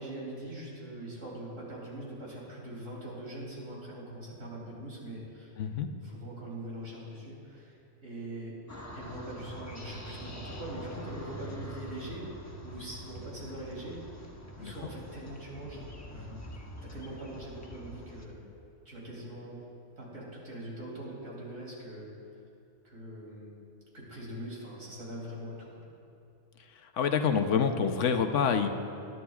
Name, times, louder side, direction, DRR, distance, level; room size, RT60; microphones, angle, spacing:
voice 1, 0.0-5.5 6.0-7.7 8.0-8.6 8.9-12.3 12.6-14.2 14.6-16.4 16.8-18.5 18.9-19.6 20.0-22.1 22.8-23.5 23.9-25.8, right 1 dB, 75° right, -4 dB, 3.3 m, -42 dB
voice 2, 5.6-5.9 14.6-14.9 26.8-28.7, left 6 dB, 75° left, 7 dB, 1.1 m, -27 dB
sound 1, 8.7-18.3, equal, 15° left, 0.9 m, -45 dB
21.0 x 11.0 x 2.4 m, 2.7 s
omnidirectional pair, 1.3 m